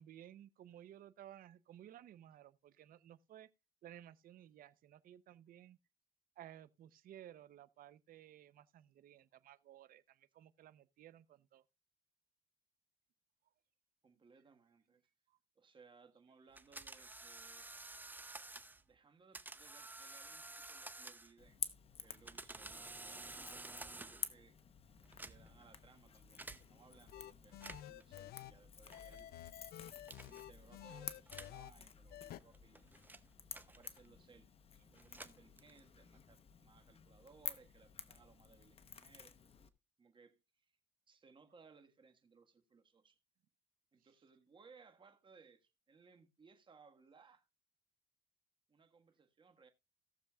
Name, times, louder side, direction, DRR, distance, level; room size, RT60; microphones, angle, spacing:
voice 1, 0.0-3.5 3.8-5.8 6.4-11.6 15.3-15.4 44.0-44.2, right 11 dB, 60° right, 0.7 m, -57 dB
voice 2, 14.0-15.0 15.5-17.7 18.9-21.6 22.0-24.6 25.2-29.3 30.1-32.9 33.7-39.3 40.0-40.7 41.1-43.2 43.9-47.5 48.7-49.7, right 5 dB, 30° right, 1.5 m, -65 dB
sound 1, 16.6-18.8 19.3-21.5 22.0-24.4 25.0-25.7 26.4-26.6 27.5-28.0 28.9-29.2 30.1-30.5 31.3-31.6 32.4-34.2 34.9-36.0, right 2 dB, 10° right, 0.7 m, -51 dB
Crackle / Crack, 21.4-39.7, left 6 dB, 35° left, 0.9 m, -51 dB
sound 2, 27.1-28.5 28.9-31.7 32.1-32.4, left 13 dB, 65° left, 0.5 m, -51 dB
18.0 x 6.8 x 2.3 m
cardioid pair, 110°, 17 cm